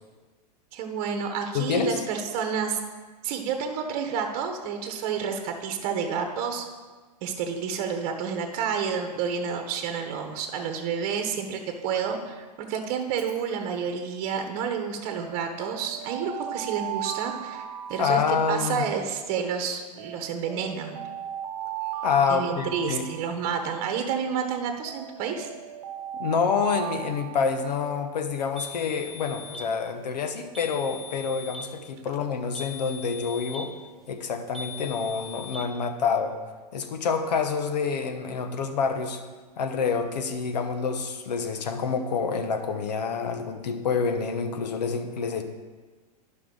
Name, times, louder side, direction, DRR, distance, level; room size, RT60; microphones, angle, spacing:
voice 1, 0.7-2.8 3.2-6.6 7.2-21.0 22.3-25.5, right 6 dB, 45° right, 5 dB, 1.1 m, -30 dB
voice 2, 1.5-2.0 18.0-18.9 22.0-23.1 26.2-33.7 34.1-36.4 36.7-39.2 39.6-45.4, left 5 dB, 80° left, 7 dB, 1.1 m, -27 dB
Alarm, 13.0-13.4 15.1-18.9 20.0-23.7 24.8-28.1, right 11 dB, 70° right, 0.9 m, -37 dB
sound 1, 28.6-29.7 30.5-31.7 32.5-33.7 34.5-35.6, left 3 dB, ahead, 2.0 m, -40 dB
11.0 x 5.7 x 3.9 m, 1.4 s
hypercardioid pair, 120°, 21 cm